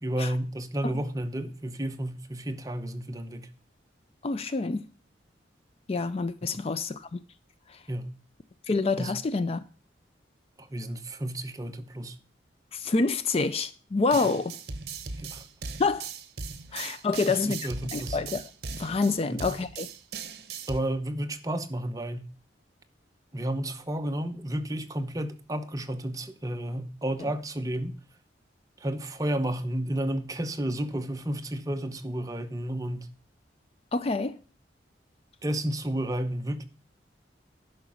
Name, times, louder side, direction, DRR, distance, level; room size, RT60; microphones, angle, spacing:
voice 1, 0.0-3.5 6.4-6.6 7.9-8.1 9.0-9.1 10.6-12.2 14.2-14.3 15.2-15.4 17.3-18.2 19.3-19.4 20.7-22.3 23.3-28.0 28.8-33.1 35.4-36.6, right 1 dB, 20° right, 0.8 m, -32 dB
voice 2, 4.2-4.8 5.9-7.2 7.7-7.8 8.7-9.6 12.7-14.5 15.8-16.1 16.7-19.9 33.9-34.4, left 3 dB, 35° left, 0.4 m, -27 dB
sound 1, 14.1-20.8, right 5 dB, 60° right, 1.0 m, -38 dB
11.0 x 5.9 x 6.2 m
head